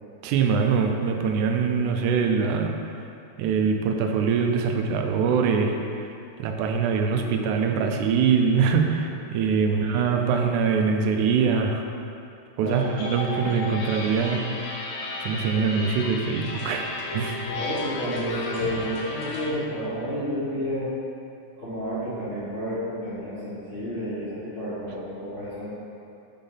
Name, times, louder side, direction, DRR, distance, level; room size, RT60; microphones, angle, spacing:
voice 1, 0.2-2.7 3.4-6.1 6.4-11.9 12.6-14.8 15.2-17.5, right 5 dB, 85° right, 3 dB, 2.1 m, -23 dB
voice 2, 9.6-10.1 12.6-12.8 17.5-20.9 21.6-25.7, equal, 40° left, -12 dB, 1.0 m, -31 dB
sound 1, 12.7-19.5, left 2 dB, 75° left, 2.2 m, -34 dB
5.4 x 5.3 x 5.5 m, 2.6 s
omnidirectional pair, 3.4 m